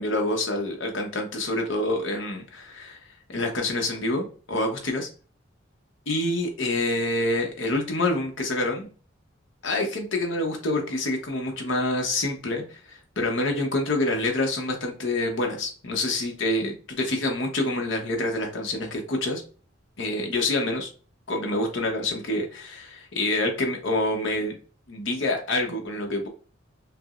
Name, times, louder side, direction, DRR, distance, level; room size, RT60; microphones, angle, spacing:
voice 1, 0.0-3.0 3.3-5.1 6.1-8.9 9.6-12.8 13.2-19.4 20.0-20.9 21.3-24.5 24.9-26.3, left 2 dB, 70° left, 2 dB, 0.9 m, -27 dB
5.7 x 2.1 x 2.4 m, 0.39 s
head